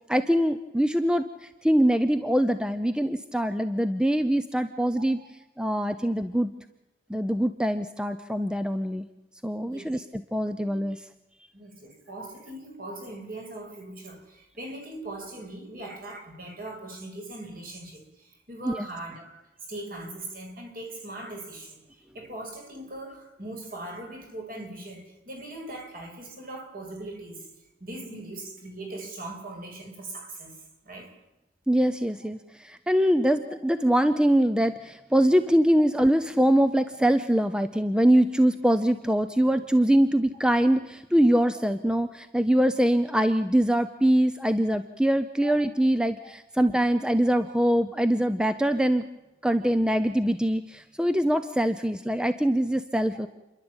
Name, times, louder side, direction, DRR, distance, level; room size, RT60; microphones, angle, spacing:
voice 1, 0.1-5.2 5.6-6.5 7.1-9.1 9.4-11.1 18.6-18.9 31.7-49.0 49.4-53.3, equal, 5° right, 10 dB, 0.6 m, -23 dB
voice 2, 9.7-10.0 11.5-19.4 19.7-21.8 22.1-27.5 27.8-30.6 30.8-31.1 45.4-45.5 46.2-46.3, right 2 dB, 50° right, 1 dB, 6.0 m, -40 dB
29.0 x 11.5 x 8.9 m, 1.0 s
head